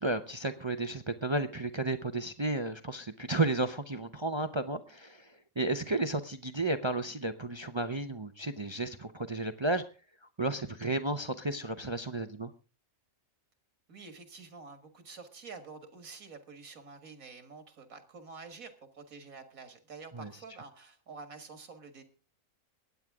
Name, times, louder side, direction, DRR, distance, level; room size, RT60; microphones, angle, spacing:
voice 1, 0.0-9.8 10.4-12.5 20.1-20.3, right 2 dB, 30° right, 9 dB, 0.5 m, -33 dB
voice 2, 13.9-22.0, right 4 dB, 75° right, 8 dB, 2.2 m, -48 dB
22.0 x 9.3 x 3.6 m, 0.33 s
omnidirectional pair, 1.5 m